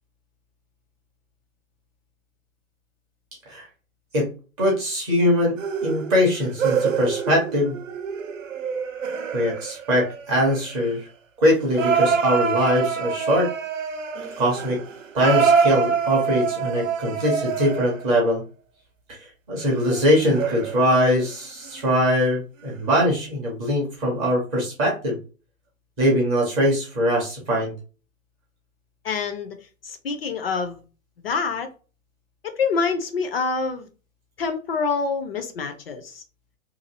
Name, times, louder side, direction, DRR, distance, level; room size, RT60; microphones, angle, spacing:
voice 1, 4.6-7.7 9.3-11.1 11.4-13.5 14.4-14.8 15.1-18.4 19.1-19.2 19.5-25.2 26.0-27.7, equal, 10° right, 0.5 m, -22 dB
sound 1, 5.6-10.8 11.7-18.3 19.6-21.2 21.6-21.9 22.6-22.7, right 6 dB, 65° right, 0.7 m, -26 dB
voice 2, 29.0-29.6 29.8-30.8 31.2-31.7 32.4-33.9 34.4-36.2, left 5 dB, 45° left, 0.5 m, -26 dB
2.6 x 2.5 x 2.7 m
figure-of-eight pair, 120°, 42 cm